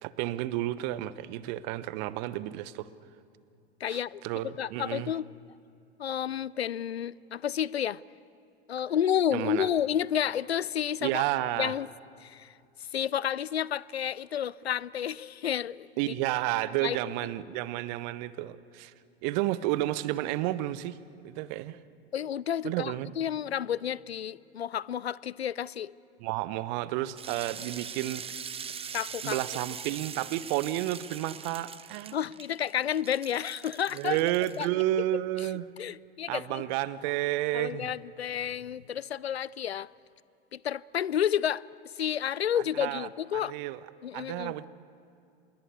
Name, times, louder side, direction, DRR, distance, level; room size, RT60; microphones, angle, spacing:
voice 1, 0.0-2.9 3.9-5.1 9.3-9.7 11.0-11.7 16.0-18.9 19.2-21.0 21.2-21.8 22.6-23.1 26.2-28.5 29.2-32.2 33.9-35.7 36.3-37.9 42.5-43.8 44.1-44.6, right 15 dB, 45° right, 17 dB, 1.0 m, -31 dB
voice 2, 3.8-5.3 6.0-8.0 8.7-11.2 11.6-11.9 12.2-12.5 12.9-16.1 16.8-17.0 22.1-25.9 28.9-29.4 32.1-34.2 34.6-34.8 35.8-36.6 37.5-39.9 40.5-41.7 42.0-43.5 44.0-44.5, left 9 dB, 80° left, 23 dB, 0.5 m, -31 dB
sound 1, 27.2-34.7, right 7 dB, 20° right, 1.0 m, -42 dB
26.5 x 22.5 x 8.4 m, 2.5 s
figure-of-eight pair, 85°, 31 cm